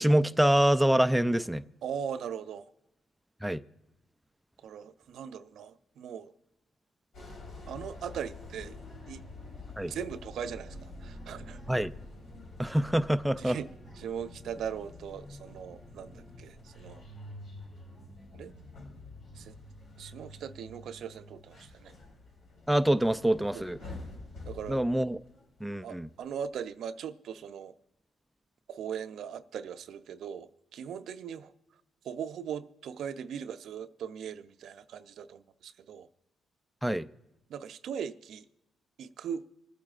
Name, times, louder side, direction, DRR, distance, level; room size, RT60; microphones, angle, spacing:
voice 1, 0.0-1.6 3.4-3.6 9.8-9.9 11.7-11.9 12.6-13.6 22.7-23.8 24.7-25.2 25.6-26.1 36.8-37.1, right 1 dB, 5° right, 0.4 m, -25 dB
voice 2, 1.8-2.7 4.6-6.3 7.7-8.8 9.1-9.2 9.8-11.6 13.4-13.7 14.0-17.0 18.3-18.5 19.3-19.5 20.0-21.9 23.5-23.9 24.5-24.8 25.8-27.7 28.7-31.5 32.0-36.1 37.5-38.4 39.0-39.4, right 8 dB, 70° right, 0.5 m, -39 dB
sound 1, 7.1-25.8 26.2-26.5, left 2 dB, 75° left, 3.8 m, -47 dB
sound 2, 9.4-16.4, left 1 dB, 15° left, 2.4 m, -57 dB
26.0 x 8.8 x 2.4 m
cardioid pair, 90°, 0 cm